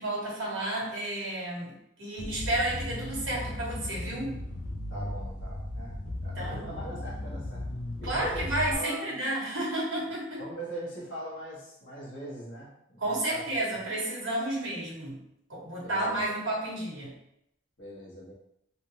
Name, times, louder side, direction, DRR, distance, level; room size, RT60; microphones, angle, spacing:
voice 1, 0.0-1.7 2.0-4.3 6.4-6.6 8.0-10.4 13.0-15.1 15.5-17.1, right 1 dB, 85° right, -5 dB, 1.2 m, -31 dB
sound 1, 2.2-8.7, left 1 dB, 45° left, 0.4 m, -36 dB
voice 2, 4.9-7.6 8.0-9.2 10.4-13.5 15.8-16.2 17.8-18.3, right 1 dB, 65° left, -5 dB, 1.0 m, -41 dB
3.3 x 2.0 x 2.8 m, 0.77 s
head